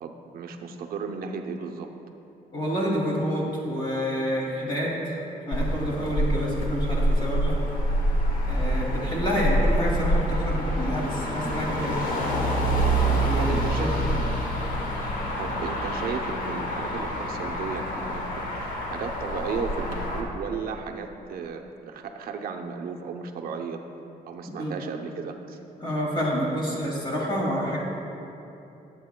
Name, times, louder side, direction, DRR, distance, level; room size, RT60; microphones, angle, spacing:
voice 1, 0.0-1.9 13.4-13.9 15.4-23.8 24.3-25.6, right 5 dB, 75° right, 3 dB, 0.7 m, -34 dB
voice 2, 2.5-5.2 5.5-7.6 8.5-12.0 13.0-14.0 24.6-24.7 25.8-27.8, equal, 30° left, -4 dB, 2.3 m, -28 dB
Motor vehicle (road), 5.5-20.2, equal, 65° left, 1.4 m, -26 dB
19.0 x 8.5 x 2.2 m, 2.9 s
wide cardioid pair, 175°, 15 cm